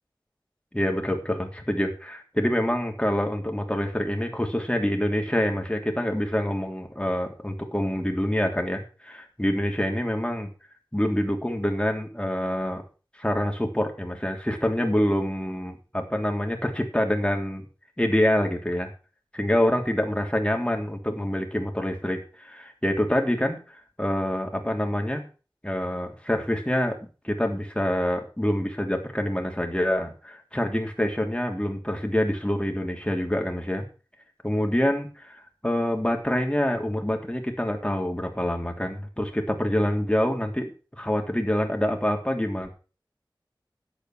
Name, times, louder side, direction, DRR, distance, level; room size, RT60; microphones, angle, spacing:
voice 1, 0.7-10.5 10.9-12.8 13.2-17.6 18.0-18.9 19.3-23.6 24.0-25.2 25.6-27.0 27.2-33.8 34.4-42.7, left 1 dB, 10° left, 3 dB, 3.3 m, -26 dB
11.0 x 8.1 x 6.4 m, 0.35 s
wide cardioid pair, 40°, 9 cm